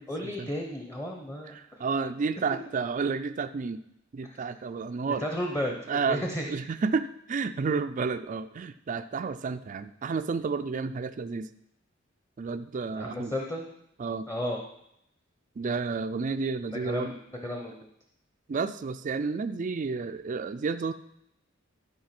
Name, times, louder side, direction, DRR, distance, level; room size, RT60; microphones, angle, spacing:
voice 1, 0.1-1.6 4.3-4.4 5.1-6.5 12.9-13.7 14.3-14.6 16.7-17.2 17.4-17.9, left 1 dB, 15° left, 1 dB, 1.0 m, -33 dB
voice 2, 1.5-3.8 4.1-5.2 5.9-11.5 12.4-13.3 14.0-14.3 15.6-17.1 18.5-20.9, right 4 dB, 40° right, 8 dB, 0.4 m, -31 dB
12.0 x 5.1 x 5.9 m, 0.77 s
head